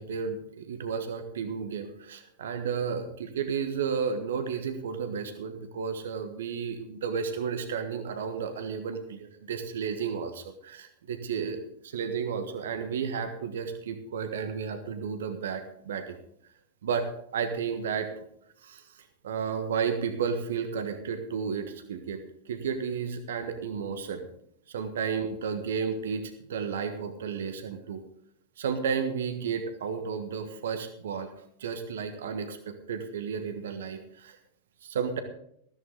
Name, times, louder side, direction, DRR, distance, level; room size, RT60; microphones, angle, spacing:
voice 1, 0.0-16.2 16.8-17.1 17.3-18.2 18.6-22.2 22.5-24.3 24.7-28.0 28.6-31.3 31.6-34.4 34.8-35.2, right 6 dB, 60° right, 8 dB, 1.5 m, -32 dB
14.5 x 13.0 x 3.8 m, 0.69 s
figure-of-eight pair, 90°, 0 cm